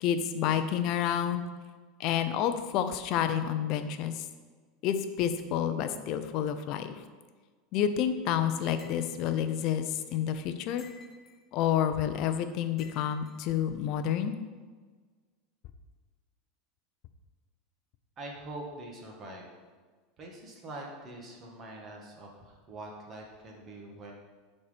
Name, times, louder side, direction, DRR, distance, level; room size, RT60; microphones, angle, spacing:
voice 1, 0.0-1.4 2.0-4.3 4.8-6.9 7.7-10.9 11.5-14.3, left 9 dB, 45° left, 9 dB, 0.6 m, -29 dB
sound 1, 8.8-9.4 10.8-11.4 12.8-13.4, left 4 dB, 25° left, 1.0 m, -55 dB
voice 2, 18.2-19.6 20.2-24.1, right 2 dB, 25° right, -1 dB, 1.7 m, -44 dB
11.0 x 4.3 x 5.1 m, 1.4 s
supercardioid pair, 160°, 0 cm